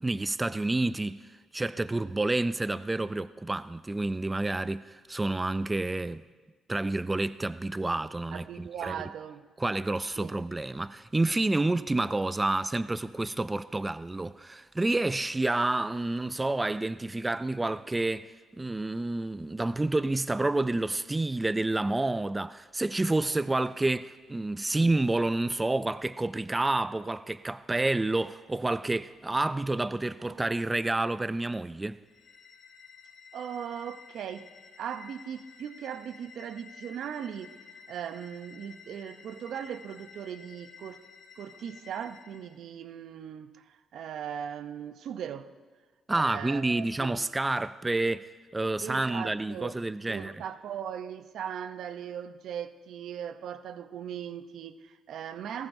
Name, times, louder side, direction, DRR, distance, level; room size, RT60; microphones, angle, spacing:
voice 1, 0.0-1.2 1.5-6.2 6.7-9.0 9.6-32.0 46.1-50.4, right 2 dB, 15° right, 0.3 m, -29 dB
voice 2, 8.3-9.5 10.2-10.4 30.2-30.5 33.3-37.6 37.9-41.0 41.4-45.5 46.1-47.2 48.8-49.8 50.1-55.7, right 8 dB, 70° right, 0.6 m, -39 dB
sound 1, 32.0-42.6, left 6 dB, 60° left, 2.5 m, -52 dB
19.5 x 18.0 x 2.6 m
cardioid pair, 90°, 0 cm